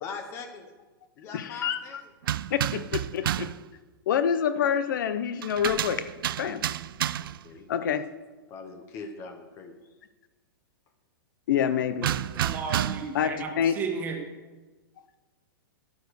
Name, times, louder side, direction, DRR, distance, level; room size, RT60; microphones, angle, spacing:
voice 1, 0.0-0.6 1.2-2.0 7.1-8.0 8.5-9.8, left 4 dB, 20° left, 6 dB, 0.8 m, -41 dB
voice 2, 1.3-1.8 2.5-3.5 4.1-6.1 6.4-6.6 7.7-8.0 11.5-12.1 13.1-13.8, left 8 dB, 55° left, 12 dB, 0.7 m, -27 dB
sound 1, 2.2-3.6 5.4-7.5 12.0-13.2, right 11 dB, 65° right, 0.4 m, -30 dB
voice 3, 12.0-14.2, right 5 dB, 15° right, 4 dB, 1.3 m, -34 dB
11.0 x 9.4 x 6.7 m, 1.3 s
hypercardioid pair, 170°, 12 cm